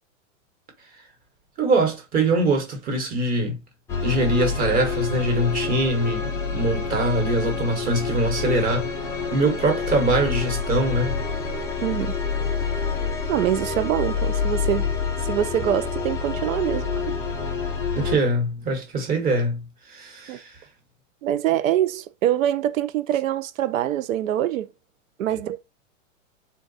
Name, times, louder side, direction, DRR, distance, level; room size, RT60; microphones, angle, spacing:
voice 1, 1.6-3.6 4.0-9.0 9.3-11.2 17.9-20.6 25.3-25.4, right 2 dB, 20° right, 1.2 m, -23 dB
sound 1, 3.9-18.2, left 5 dB, 5° left, 0.4 m, -27 dB
voice 2, 11.8-12.1 13.3-14.9 15.2-16.9 20.3-20.4 21.2-24.7 25.2-25.6, right 11 dB, 80° right, 0.7 m, -24 dB
3.8 x 2.3 x 4.0 m
supercardioid pair, 150°, 39 cm